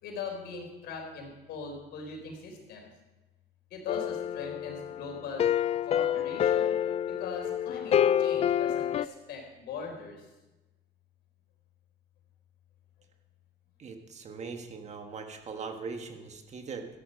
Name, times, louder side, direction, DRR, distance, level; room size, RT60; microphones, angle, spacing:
voice 1, 0.0-2.9 3.7-5.5 5.9-6.8 7.0-10.3, left 5 dB, 80° left, 2 dB, 3.9 m, -40 dB
sound 1, 3.9-9.1, left 10 dB, 40° left, 0.4 m, -28 dB
voice 2, 13.8-16.9, right 5 dB, 40° right, 5 dB, 1.6 m, -40 dB
13.0 x 11.0 x 5.3 m, 1.0 s
cardioid pair, 110°, 17 cm